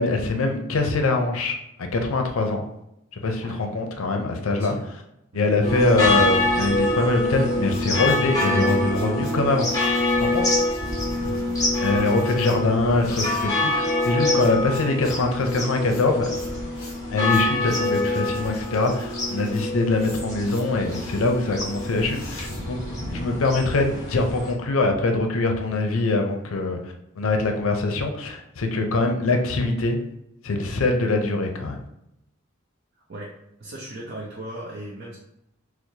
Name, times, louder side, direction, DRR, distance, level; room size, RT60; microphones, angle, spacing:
voice 1, 0.0-2.6 3.1-4.8 5.3-9.7 10.2-10.5 11.8-16.3 17.1-22.8 23.1-26.8 27.2-30.0 30.4-31.8, left 2 dB, 75° left, 4 dB, 0.5 m, -23 dB
voice 2, 4.5-4.9 5.3-5.5 11.2-11.8 12.1-12.3 33.1-33.3 33.6-35.2, right 1 dB, 50° right, -4 dB, 0.6 m, -38 dB
sound 1, 5.6-24.5, left 2 dB, 15° left, 0.9 m, -25 dB
sound 2, 7.3-23.2, left 2 dB, 45° left, 1.1 m, -47 dB
4.5 x 2.0 x 2.7 m, 0.82 s
head